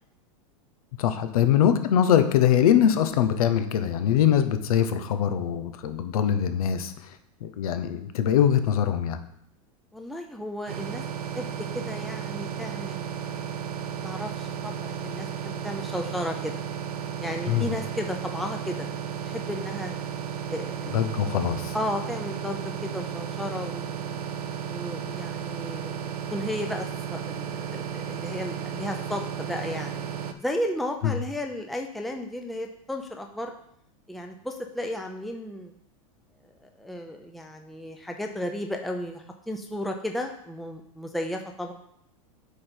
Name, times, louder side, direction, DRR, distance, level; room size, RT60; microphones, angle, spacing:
voice 1, 1.0-7.2 7.4-9.2 17.5-17.7 20.9-21.7 31.0-31.1, left 9 dB, 80° left, 10 dB, 0.9 m, -22 dB
voice 2, 9.9-11.0 11.3-13.1 14.0-16.6 17.2-18.9 19.2-20.0 20.5-20.9 21.2-21.3 21.7-24.2 24.7-30.1 30.4-33.5 34.1-35.7 36.6-41.7, left 1 dB, ahead, 3 dB, 0.7 m, -34 dB
sound 1, 10.7-30.3, right 8 dB, 85° right, 0.8 m, -34 dB
8.2 x 5.2 x 4.5 m, 0.72 s
supercardioid pair, 125°, 19 cm